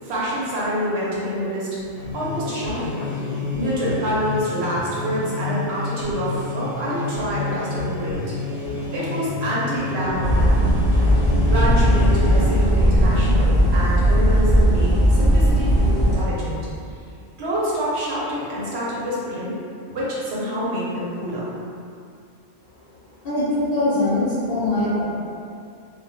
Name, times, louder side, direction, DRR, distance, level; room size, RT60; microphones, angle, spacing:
voice 1, 0.0-1.8 2.1-3.0 3.5-8.3 8.9-10.7 11.4-16.6 17.4-19.6 19.8-21.5, equal, 70° right, -7 dB, 0.9 m, -26 dB
sound 1, 1.8-12.8, left 3 dB, 85° left, 1.0 m, -29 dB
sound 2, 10.2-16.2, equal, 35° right, 0.5 m, -17 dB
voice 2, 23.2-25.0, left 2 dB, 65° left, -9 dB, 0.7 m, -22 dB
2.1 x 2.1 x 2.9 m, 2.4 s
omnidirectional pair, 1.2 m